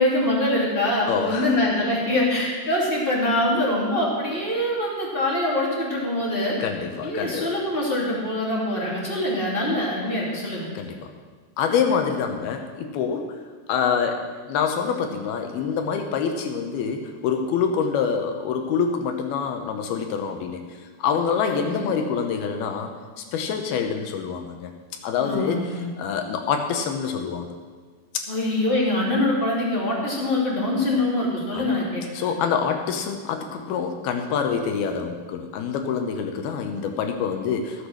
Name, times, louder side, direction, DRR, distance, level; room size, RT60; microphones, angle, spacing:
voice 1, 0.0-6.6 7.0-10.7 21.4-21.8 25.2-25.9 28.3-32.3, left 1 dB, 15° left, -4 dB, 2.1 m, -24 dB
voice 2, 1.1-1.5 6.6-7.5 10.7-11.1 11.6-13.4 13.7-20.6 21.0-22.9 23.2-24.7 25.0-27.5 28.1-28.3 31.5-31.8 32.1-37.9, left 6 dB, 75° left, 5 dB, 2.7 m, -26 dB
14.5 x 8.1 x 6.4 m, 1.5 s
omnidirectional pair, 4.6 m